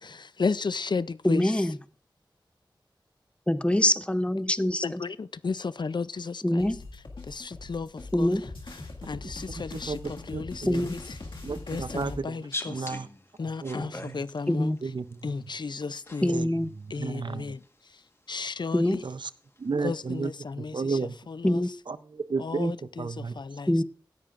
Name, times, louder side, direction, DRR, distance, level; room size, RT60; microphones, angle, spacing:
voice 1, 0.0-1.6 4.8-6.7 7.3-8.5 8.7-8.8 9.0-11.0 11.7-12.9 13.4-14.7 15.2-16.3 16.9-17.6 18.3-19.0 19.8-21.0 21.3-21.6 22.4-23.8, left 4 dB, 65° left, 0.4 m, -34 dB
voice 2, 1.2-1.8 3.5-5.0 6.4-6.8 8.1-8.4 10.7-10.9 14.5-14.8 16.2-16.7 18.7-19.0 21.4-21.7 23.7-23.8, left 1 dB, 15° left, 0.7 m, -24 dB
sound 1, 6.6-12.2, left 2 dB, 85° left, 1.9 m, -41 dB
voice 3, 9.7-10.9 11.4-12.4 12.7-13.1 13.6-14.3 14.8-15.3 16.3-16.5 16.7-17.6 19.0-19.3 19.6-21.1 21.9-22.7 23.0-23.4, right 4 dB, 70° right, 0.6 m, -33 dB
sound 2, 12.4-15.3 16.0-16.6 16.9-18.0 18.9-19.0 19.6-19.8, left 2 dB, 30° left, 1.4 m, -40 dB
17.5 x 11.0 x 2.5 m
cardioid pair, 40°, 8 cm